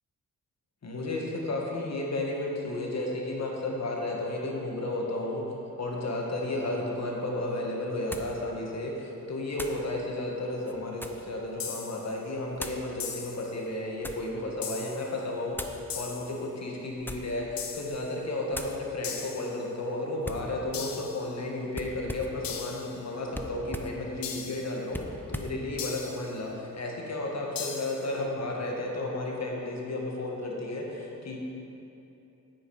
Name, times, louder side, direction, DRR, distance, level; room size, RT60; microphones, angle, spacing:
voice 1, 0.8-5.5 5.8-15.6 16.0-31.4, left 2 dB, 50° left, -1 dB, 1.9 m, -33 dB
sound 1, 7.0-7.1 8.1-8.4 9.5-9.9 10.6-11.3 12.5-12.9 13.6-14.3 15.5-15.8 16.9-17.4 17.8-18.1 18.5-18.8 20.2-20.5 21.7-22.4 23.3-24.0 24.9-25.6, left 1 dB, 5° left, 0.7 m, -39 dB
sound 2, 11.6-12.1 13.0-13.5 14.6-15.1 15.9-16.4 17.6-18.1 19.0-19.6 20.7-21.3 22.4-23.0 24.2-24.8 25.8-26.3 27.6-28.1, left 6 dB, 80° left, 1.0 m, -38 dB
9.2 x 9.2 x 5.0 m, 2.9 s
cardioid pair, 80°, 34 cm